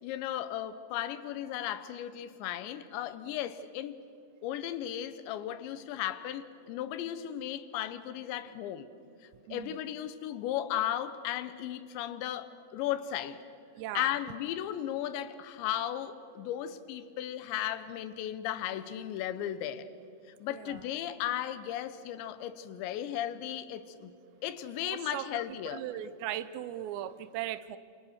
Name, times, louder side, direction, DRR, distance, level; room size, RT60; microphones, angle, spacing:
voice 1, 0.0-4.0 4.4-8.9 9.5-13.4 13.9-19.9 20.4-25.9, left 11 dB, 90° left, 3.3 m, -35 dB
voice 2, 13.8-14.1 20.5-20.6 24.8-25.2 25.7-27.8, right 12 dB, 85° right, 3.0 m, -38 dB
28.5 x 27.0 x 6.5 m
omnidirectional pair, 5.0 m